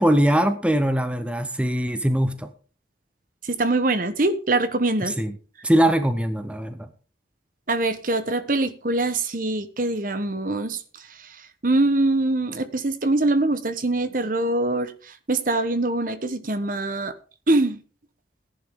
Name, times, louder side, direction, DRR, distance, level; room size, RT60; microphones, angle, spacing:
voice 1, 0.0-2.5 5.0-5.3 5.6-6.8, right 1 dB, 5° right, 0.8 m, -21 dB
voice 2, 3.4-5.1 7.7-10.8 11.6-14.9 15.3-17.1 17.5-17.8, right 2 dB, 45° right, 1.0 m, -23 dB
15.0 x 10.5 x 3.6 m
head